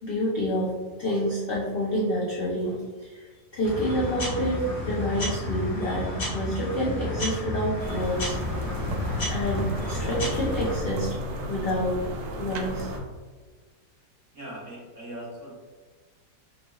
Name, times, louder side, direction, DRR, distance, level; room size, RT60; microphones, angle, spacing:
voice 1, 0.0-0.7 1.0-6.1 6.3-8.4 9.3-11.1 11.5-12.0 12.4-12.9, equal, 70° left, -5 dB, 0.5 m, -28 dB
sound 1, 3.6-10.8, left 1 dB, 55° left, 1.3 m, -31 dB
sound 2, 7.8-13.0, right 1 dB, 80° right, 0.7 m, -33 dB
voice 2, 14.3-15.8, right 1 dB, 45° right, -6 dB, 1.4 m, -40 dB
5.3 x 3.0 x 2.3 m, 1.4 s
omnidirectional pair, 1.9 m